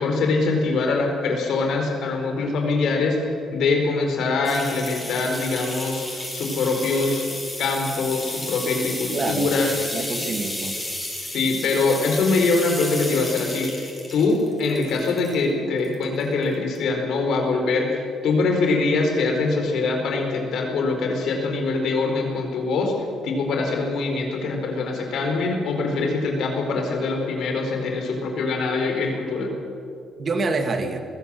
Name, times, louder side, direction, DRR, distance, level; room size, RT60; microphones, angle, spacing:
voice 1, 0.0-7.3 7.6-9.7 11.3-22.9 23.2-29.5, left 3 dB, 75° left, 3 dB, 4.5 m, -23 dB
sound 1, 4.4-15.4 15.8-16.4 16.7-16.8, left 1 dB, 5° left, 6.0 m, -32 dB
voice 2, 9.1-9.5 9.9-10.8 30.2-31.0, right 3 dB, 40° right, 6 dB, 2.3 m, -26 dB
21.5 x 15.5 x 7.9 m, 2.5 s
cardioid pair, 90°, 0 cm